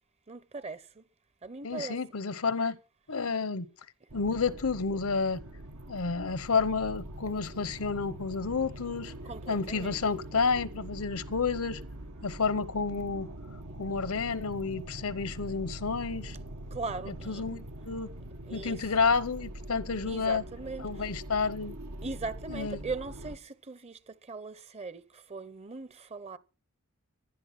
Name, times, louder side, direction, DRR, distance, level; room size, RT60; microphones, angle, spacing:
voice 1, 0.3-0.8 1.4-2.0 9.2-10.0 16.7-17.4 18.5-18.9 20.1-20.9 22.0-26.4, right 3 dB, 30° right, 0.8 m, -39 dB
voice 2, 1.6-2.8 3.1-3.7 4.1-5.4 5.9-9.1 9.5-11.8 12.2-13.3 13.8-16.4 17.3-18.1 18.5-20.4 20.8-21.8 22.5-22.8, left 4 dB, 75° left, 0.9 m, -30 dB
sound 1, 4.1-23.4, right 1 dB, 80° right, 1.3 m, -43 dB
15.5 x 11.0 x 5.8 m
head